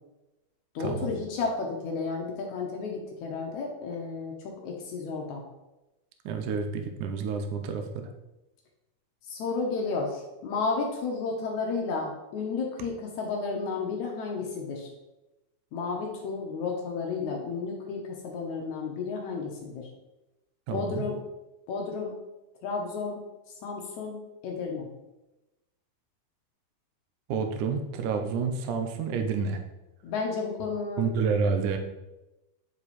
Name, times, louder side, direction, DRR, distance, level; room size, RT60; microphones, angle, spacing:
voice 1, 0.8-4.3 4.6-5.4 9.3-14.9 15.7-19.9 20.7-21.2 21.7-22.2 22.6-23.2 23.6-24.9 30.0-31.1, left 4 dB, 70° left, 0 dB, 1.8 m, -32 dB
voice 2, 6.3-8.1 20.7-21.0 27.3-29.6 31.0-31.8, right 5 dB, 75° right, 6 dB, 1.9 m, -29 dB
10.0 x 4.7 x 4.2 m, 1.0 s
omnidirectional pair, 4.5 m